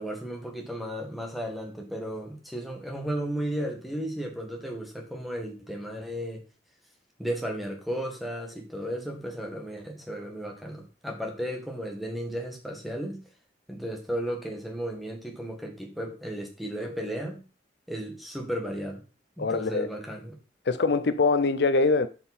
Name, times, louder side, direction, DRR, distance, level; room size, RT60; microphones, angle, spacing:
voice 1, 0.0-6.4 7.2-13.2 13.7-17.4 17.9-19.0 19.4-20.4, equal, ahead, 1.8 m, -34 dB
voice 2, 19.4-19.9 20.7-22.1, left 3 dB, 60° left, 0.5 m, -23 dB
11.5 x 5.7 x 4.2 m
head